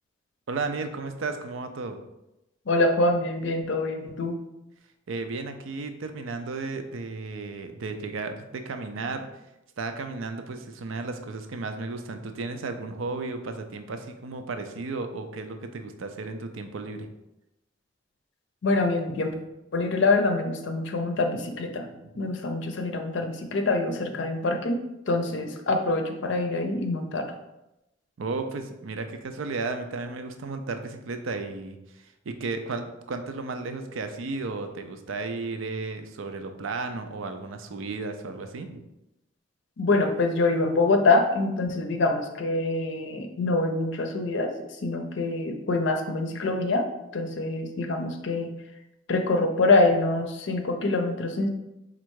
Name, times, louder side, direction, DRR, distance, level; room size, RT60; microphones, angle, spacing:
voice 1, 0.5-2.0 5.1-9.3 9.8-17.1 21.9-22.2 28.2-38.8, right 3 dB, 80° right, 7 dB, 0.5 m, -34 dB
voice 2, 2.7-4.4 18.6-19.3 19.7-21.9 22.2-24.8 25.1-27.4 39.8-44.5 44.8-46.9 47.1-48.5 49.1-51.5, left 2 dB, 65° left, 5 dB, 0.5 m, -25 dB
4.2 x 2.4 x 4.6 m, 0.92 s
head